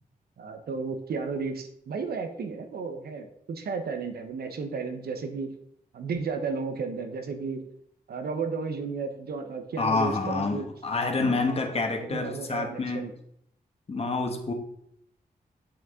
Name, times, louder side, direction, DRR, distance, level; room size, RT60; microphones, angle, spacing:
voice 1, 0.4-5.6 5.9-7.6 8.1-10.7 12.0-13.1, right 4 dB, 85° right, 7 dB, 1.1 m, -33 dB
voice 2, 9.8-13.1 13.9-14.5, left 3 dB, 40° left, 4 dB, 1.4 m, -28 dB
8.5 x 6.1 x 3.8 m, 0.71 s
wide cardioid pair, 115°, 16 cm